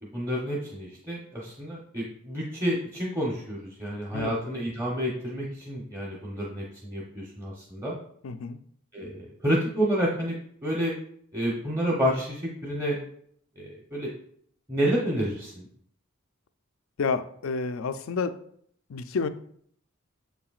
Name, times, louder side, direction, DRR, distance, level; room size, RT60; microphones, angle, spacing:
voice 1, 0.0-8.0 8.9-10.3 10.6-10.9 11.3-13.0 13.6-14.1 14.7-15.7, equal, 15° right, -4 dB, 0.9 m, -29 dB
voice 2, 8.2-8.6 17.0-18.4 18.9-19.3, left 4 dB, 75° left, 11 dB, 0.4 m, -29 dB
7.1 x 5.8 x 2.4 m, 0.65 s
head